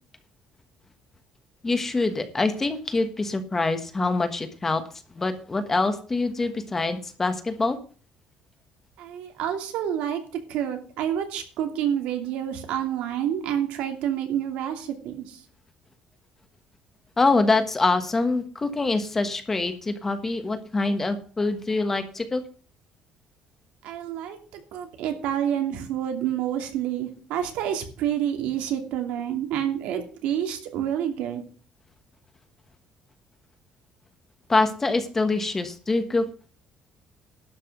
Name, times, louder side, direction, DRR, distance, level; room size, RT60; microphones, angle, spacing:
voice 1, 1.6-4.8 5.1-7.8 17.2-22.4 34.5-36.2, left 3 dB, 15° left, 9 dB, 1.3 m, -25 dB
voice 2, 9.0-10.2 10.5-15.4 23.8-31.4, right 10 dB, 80° right, 5 dB, 2.7 m, -28 dB
11.5 x 6.0 x 7.9 m, 0.40 s
cardioid pair, 165°, 2 cm